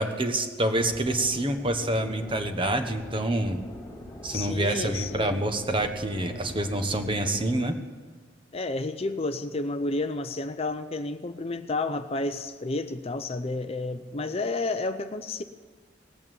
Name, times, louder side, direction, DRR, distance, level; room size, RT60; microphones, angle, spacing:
voice 1, 0.0-3.6 4.2-7.8, right 1 dB, 25° right, 1.2 m, -27 dB
sound 1, 0.7-7.6, left 1 dB, 10° left, 2.4 m, -43 dB
voice 2, 4.3-5.4 8.5-15.4, left 2 dB, 30° left, 0.6 m, -31 dB
18.5 x 8.4 x 9.2 m
head